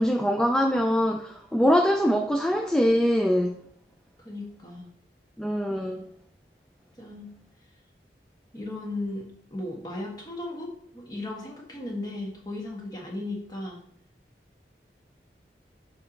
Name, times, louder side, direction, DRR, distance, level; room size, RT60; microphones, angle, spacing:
voice 1, 0.0-3.6 5.4-6.1, equal, 5° left, 2 dB, 0.4 m, -23 dB
voice 2, 4.2-4.9 7.0-7.3 8.5-13.8, left 2 dB, 20° left, 0 dB, 1.3 m, -36 dB
6.5 x 4.5 x 3.8 m, 0.65 s
head